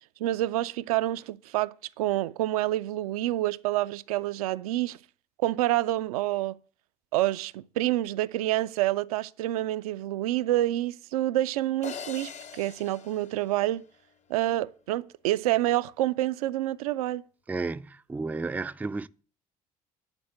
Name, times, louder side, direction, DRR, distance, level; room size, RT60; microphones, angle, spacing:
voice 1, 0.2-5.0 5.4-6.6 7.1-13.8 14.3-17.2, right 15 dB, 75° right, 0.4 m, -28 dB
sound 1, 11.8-14.2, left 6 dB, 40° left, 0.8 m, -43 dB
voice 2, 17.5-19.1, right 3 dB, 10° right, 0.4 m, -32 dB
10.5 x 4.8 x 7.8 m
figure-of-eight pair, 55°, 19 cm